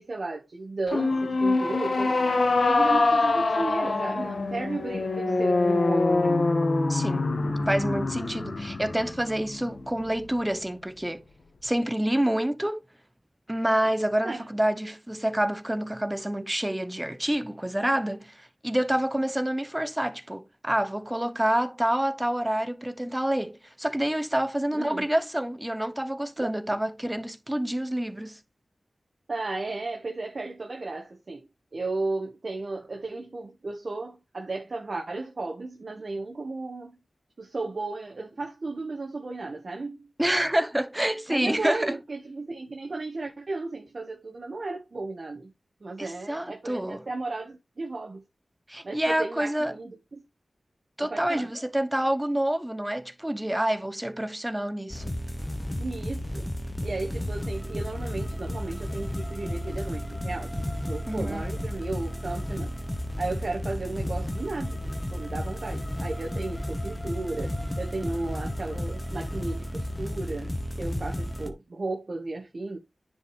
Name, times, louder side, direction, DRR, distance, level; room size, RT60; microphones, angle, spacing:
voice 1, 0.0-2.3 2.6-6.5 14.2-14.5 24.7-25.1 26.4-26.5 29.3-31.4 31.7-36.9 37.4-40.1 41.3-45.5 45.8-48.2 48.8-50.2 51.0-51.5 55.8-56.5 56.8-62.7 63.2-70.5 70.8-72.8, right 3 dB, 60° right, 1.4 m, -34 dB
sound 1, 0.9-10.3, left 3 dB, 75° left, 1.6 m, -25 dB
voice 2, 6.9-7.2 7.7-11.2 11.6-12.8 13.5-28.4 40.2-42.0 46.0-47.1 48.7-49.7 51.0-55.2 61.1-61.4, right 1 dB, 15° right, 0.8 m, -27 dB
sound 2, 54.9-71.5, equal, 20° left, 1.3 m, -33 dB
10.0 x 5.0 x 3.2 m
wide cardioid pair, 55°, 0 cm